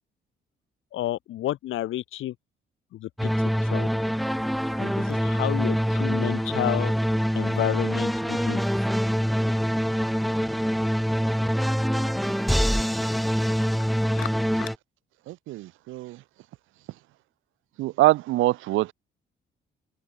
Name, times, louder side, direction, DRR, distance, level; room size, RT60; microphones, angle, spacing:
voice 1, 0.9-2.3 2.9-3.3 3.6-3.9 4.8-6.9 7.3-8.6 13.5-13.7 14.1-14.3 14.6-14.7, left 14 dB, 85° left, 6.8 m, -31 dB
sound 1, 3.2-14.8, equal, ahead, 6.2 m, -25 dB
voice 2, 15.3-16.2 17.8-18.9, right 17 dB, 90° right, 0.9 m, -24 dB
open air
cardioid pair, 90°, 20 cm